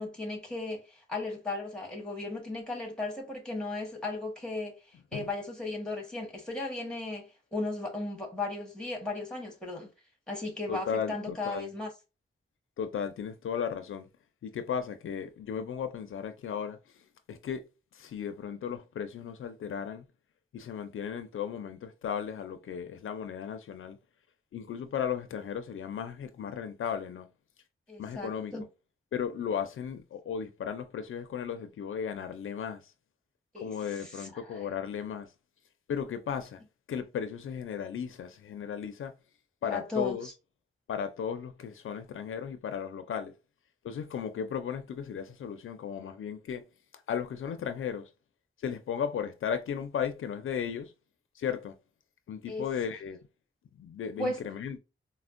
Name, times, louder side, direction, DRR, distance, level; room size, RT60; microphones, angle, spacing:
voice 1, 0.0-4.7 5.1-9.9 10.3-11.9 27.9-28.6 33.5-33.7 34.0-34.6 39.6-40.2 52.5-52.6 54.2-54.4, left 2 dB, 5° left, 1.1 m, -36 dB
voice 2, 10.7-11.7 12.8-14.1 14.4-17.7 17.9-20.0 20.5-24.0 24.5-27.3 28.0-28.5 29.1-32.9 33.6-35.3 35.9-36.6 36.9-39.1 39.6-40.3 40.9-43.3 43.8-46.6 47.1-48.1 48.6-50.9 51.3-51.7 52.3-53.2 53.8-54.8, left 7 dB, 80° left, 0.4 m, -35 dB
4.2 x 2.0 x 2.4 m
wide cardioid pair, 125°, 21 cm